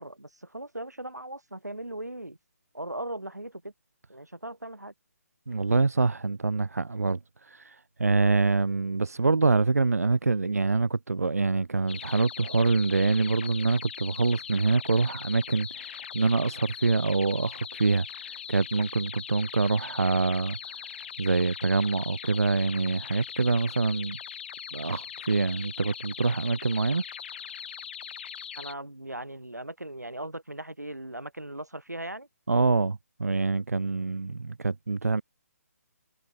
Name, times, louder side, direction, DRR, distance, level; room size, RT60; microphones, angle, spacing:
voice 1, 0.0-2.4 2.7-3.7 4.1-4.9 28.5-32.3, right 1 dB, 85° right, 6.8 m, -38 dB
voice 2, 5.5-20.8 21.2-24.2 24.7-27.0 32.5-35.2, right 3 dB, 65° right, 2.1 m, -25 dB
sound 1, 11.9-28.7, left 8 dB, 40° left, 1.9 m, -41 dB
figure-of-eight pair, 140°, 9 cm